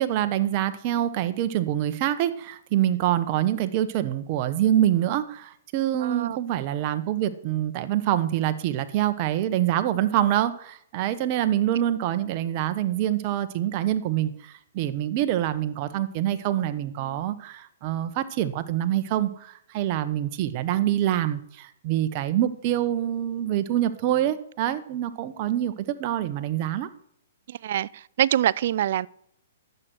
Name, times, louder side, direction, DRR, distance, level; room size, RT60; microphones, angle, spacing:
voice 1, 0.0-26.9, right 12 dB, 40° right, 1.0 m, -25 dB
voice 2, 6.0-6.4 27.5-29.1, right 11 dB, 60° right, 0.3 m, -25 dB
10.5 x 7.8 x 6.1 m
hypercardioid pair, 130°, 0 cm